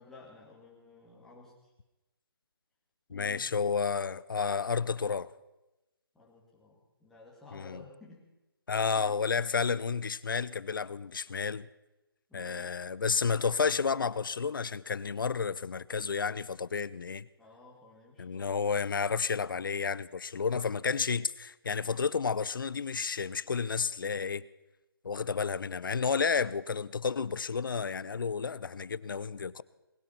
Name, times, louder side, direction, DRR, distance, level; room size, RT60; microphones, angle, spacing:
voice 1, 0.0-1.7 3.1-3.6 6.1-8.2 12.3-12.8 17.4-18.6, left 3 dB, 5° left, 2.5 m, -54 dB
voice 2, 3.1-5.3 7.5-7.8 8.7-11.7 12.3-17.3 18.2-24.4 25.0-29.6, left 5 dB, 60° left, 0.6 m, -31 dB
20.0 x 11.0 x 6.0 m
figure-of-eight pair, 160°, 13 cm